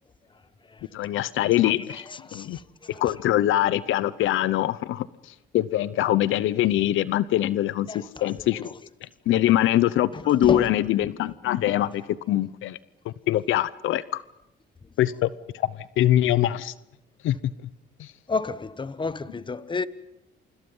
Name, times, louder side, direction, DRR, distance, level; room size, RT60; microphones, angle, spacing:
voice 1, 0.9-2.1 2.3-2.6 3.0-5.1 5.5-8.7 9.0-12.0 12.3-12.8 13.1-14.2 15.0-15.3 15.6-16.7 17.2-17.4 18.0-18.1, left 13 dB, 85° left, 0.8 m, -23 dB
voice 2, 1.6-3.0 7.9-8.7 10.1-10.8 18.3-19.9, left 4 dB, 25° left, 1.2 m, -32 dB
29.5 x 25.5 x 5.6 m
cardioid pair, 90°, 20 cm